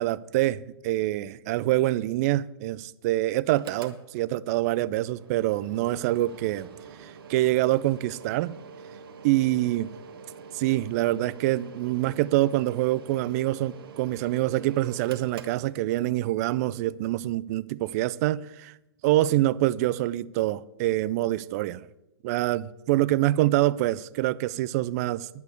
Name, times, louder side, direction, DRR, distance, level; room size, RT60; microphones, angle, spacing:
voice 1, 0.0-6.7 7.0-8.5 9.2-9.9 10.5-18.7 19.0-21.8 22.2-25.3, right 16 dB, 40° right, 0.4 m, -25 dB
Mechanical fan, 3.5-16.3, right 5 dB, 60° right, 1.4 m, -46 dB
11.0 x 6.2 x 8.2 m
figure-of-eight pair, 115°, 14 cm